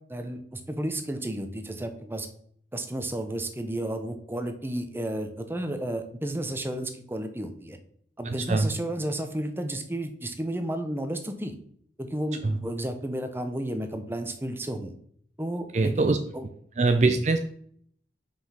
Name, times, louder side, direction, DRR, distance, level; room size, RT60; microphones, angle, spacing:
voice 1, 0.0-2.3 2.7-7.8 8.2-11.6 12.0-14.9 15.4-16.5 17.1-17.2, right 1 dB, 15° right, 7 dB, 0.8 m, -32 dB
voice 2, 8.3-8.7 12.4-12.6 15.7-16.2 16.8-17.4, right 3 dB, 40° right, 7 dB, 0.4 m, -23 dB
5.8 x 5.1 x 5.8 m, 0.62 s
head